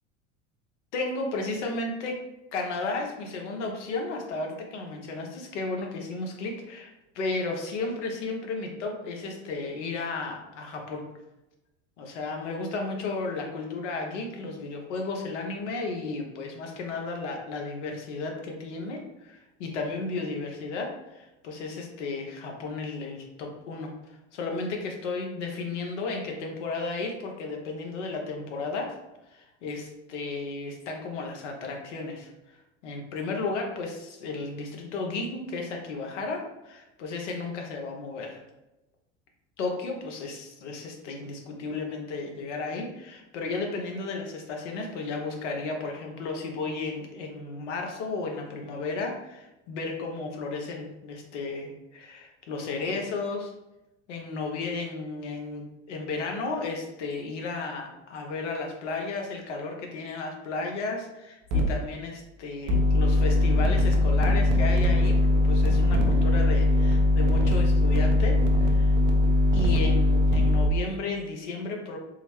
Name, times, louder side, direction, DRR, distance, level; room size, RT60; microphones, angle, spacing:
voice 1, 0.9-2.2 2.5-11.1 12.0-28.9 29.3-38.4 39.6-53.5 54.1-68.9 69.5-72.0, left 3 dB, 75° left, 1 dB, 0.8 m, -34 dB
sound 1, 61.5-61.6 62.7-70.7, left 2 dB, 55° right, 0.7 m, -21 dB
3.8 x 2.0 x 3.0 m, 0.97 s
hypercardioid pair, 80°, 36 cm